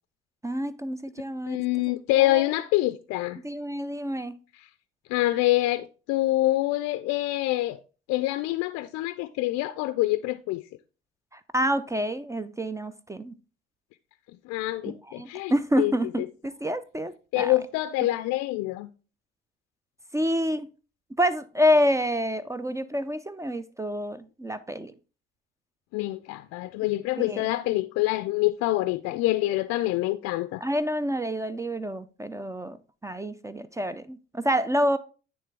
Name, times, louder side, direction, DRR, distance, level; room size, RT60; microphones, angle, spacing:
voice 1, 0.4-1.6 1.9-2.5 3.4-4.4 11.3-13.3 15.0-17.5 18.0-18.1 20.1-20.7 21.2-24.9 27.2-27.5 30.6-32.8 33.0-35.0, equal, 10° right, 0.4 m, -28 dB
voice 2, 1.5-3.4 5.1-7.8 8.1-10.6 14.5-15.9 17.3-18.9 25.9-30.6, left 17 dB, 60° left, 0.4 m, -26 dB
9.3 x 3.3 x 3.4 m
hypercardioid pair, 55°, 29 cm